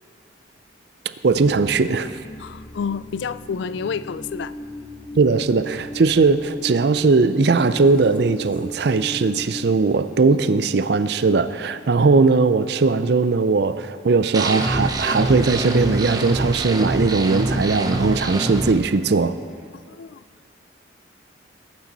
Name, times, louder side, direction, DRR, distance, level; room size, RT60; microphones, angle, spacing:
voice 1, 1.2-2.2 5.1-19.4, right 4 dB, 60° right, 13 dB, 0.4 m, -19 dB
sound 1, 1.3-9.7, equal, 30° left, 0.9 m, -36 dB
voice 2, 2.4-4.5 19.7-20.2, left 6 dB, 70° left, 16 dB, 0.3 m, -29 dB
sound 2, 14.3-18.7, right 1 dB, 20° right, 0.7 m, -24 dB
19.5 x 9.0 x 4.0 m, 2.1 s
head